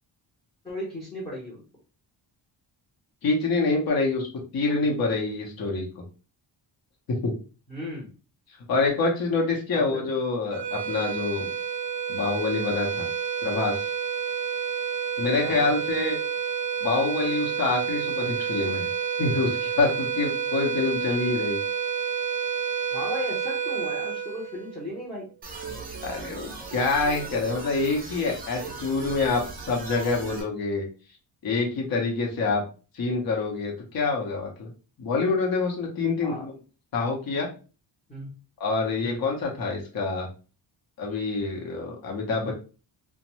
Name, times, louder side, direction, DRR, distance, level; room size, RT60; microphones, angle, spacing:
voice 1, 0.6-1.6 7.7-8.1 9.7-10.0 15.4-15.7 22.9-25.3 36.2-36.5 38.1-38.3 39.0-39.2 42.4-42.5, left 1 dB, 10° left, -6 dB, 0.7 m, -36 dB
voice 2, 3.2-4.3 4.5-5.9 7.1-7.3 8.7-11.5 12.1-13.1 13.4-13.9 15.2-16.2 16.8-18.9 19.2-21.6 26.0-30.9 31.4-32.6 32.9-34.7 35.0-36.5 36.9-37.5 38.6-40.3 41.0-42.5, left 3 dB, 50° left, 0 dB, 0.9 m, -26 dB
sound 1, 10.5-25.1, right 7 dB, 65° right, 0.6 m, -29 dB
sound 2, 25.4-30.4, right 4 dB, 20° right, 0.6 m, -38 dB
2.5 x 2.2 x 3.0 m, 0.35 s
wide cardioid pair, 145°, 45 cm